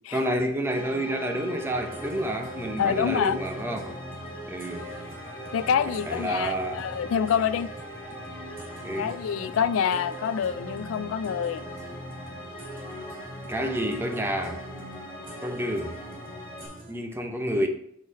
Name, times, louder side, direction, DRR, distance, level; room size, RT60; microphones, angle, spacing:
voice 1, 0.1-4.0 4.5-4.9 6.1-6.8 8.8-9.2 13.5-14.6 15.4-16.0 16.9-17.7, equal, 10° right, 0.7 m, -29 dB
sound 1, 0.7-16.7, equal, 25° left, 2.2 m, -40 dB
sound 2, 1.6-16.9, equal, 45° right, 2.2 m, -44 dB
voice 2, 2.8-3.4 5.5-7.7 9.0-11.7, left 8 dB, 80° left, 0.3 m, -26 dB
7.9 x 4.0 x 4.0 m
head